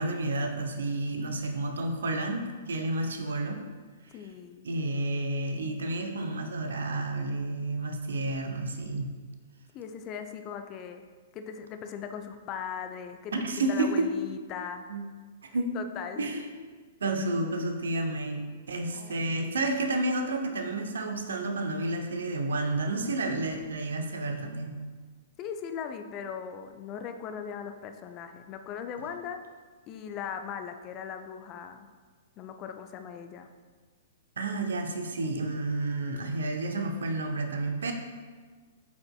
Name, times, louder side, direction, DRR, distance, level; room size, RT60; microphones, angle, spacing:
voice 1, 0.0-3.7 4.6-9.1 13.3-14.1 14.9-15.0 15.5-15.8 16.2-16.4 17.0-24.8 34.4-37.9, right 2 dB, 65° right, 4 dB, 0.7 m, -30 dB
voice 2, 4.1-4.7 9.7-11.0 11.3-14.8 15.7-16.8 18.9-19.3 25.4-29.4 29.9-31.9 32.4-33.5, left 7 dB, 30° left, 7 dB, 0.4 m, -39 dB
8.0 x 5.2 x 2.3 m, 1.5 s
figure-of-eight pair, 110°, 0 cm